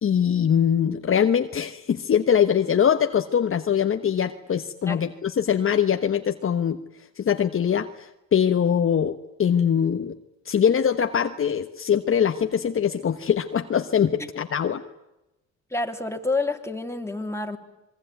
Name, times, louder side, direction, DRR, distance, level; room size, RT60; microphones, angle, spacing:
voice 1, 0.0-6.8 7.2-10.2 10.4-14.8, left 8 dB, 45° left, 8 dB, 1.2 m, -22 dB
voice 2, 15.7-17.6, left 3 dB, 10° left, 4 dB, 3.1 m, -28 dB
26.5 x 21.5 x 9.3 m, 0.94 s
cardioid pair, 90°, 30 cm